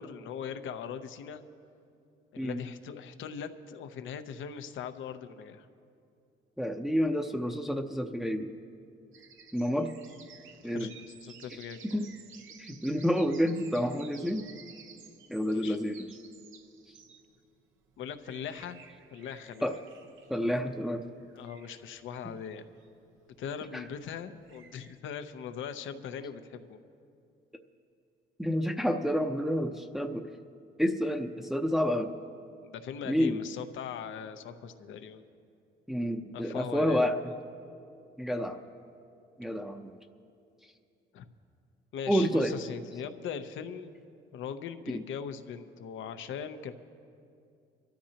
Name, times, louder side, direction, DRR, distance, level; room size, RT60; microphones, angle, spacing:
voice 1, 0.0-1.4 2.3-5.7 10.7-11.8 15.5-15.8 18.0-18.8 19.1-19.7 21.3-22.7 23.4-26.8 32.6-35.2 36.3-37.3 41.1-41.3 41.9-43.9 44.3-46.7, left 7 dB, 75° left, 9 dB, 0.8 m, -40 dB
voice 2, 6.6-8.5 9.5-9.9 10.6-10.9 11.9-12.1 12.6-14.5 15.3-16.1 19.6-19.7 20.3-21.0 23.7-23.8 28.4-30.3 30.8-32.1 33.1-33.4 35.9-37.2 38.2-38.6 39.4-40.0 42.1-42.6 44.9-45.0, equal, ahead, 3 dB, 0.7 m, -29 dB
sound 1, 9.1-24.9, right 6 dB, 80° right, 1.0 m, -55 dB
25.5 x 13.0 x 2.9 m, 2.5 s
cardioid pair, 90°, 20 cm